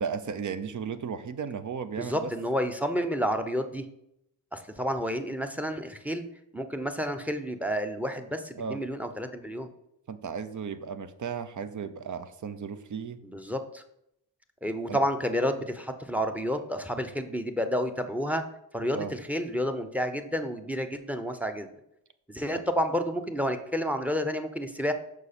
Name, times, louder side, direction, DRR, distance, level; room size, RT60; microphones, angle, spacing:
voice 1, 0.0-2.3 8.6-8.8 10.1-13.2 14.9-15.0 18.9-19.1 22.5-22.6, right 6 dB, 40° right, 12 dB, 0.7 m, -35 dB
voice 2, 2.0-3.9 4.5-6.2 6.5-9.7 13.2-13.8 14.6-18.4 18.7-21.7 22.3-24.9, equal, 5° right, 7 dB, 0.8 m, -30 dB
6.5 x 4.8 x 4.3 m, 0.78 s
supercardioid pair, 55°, 46 cm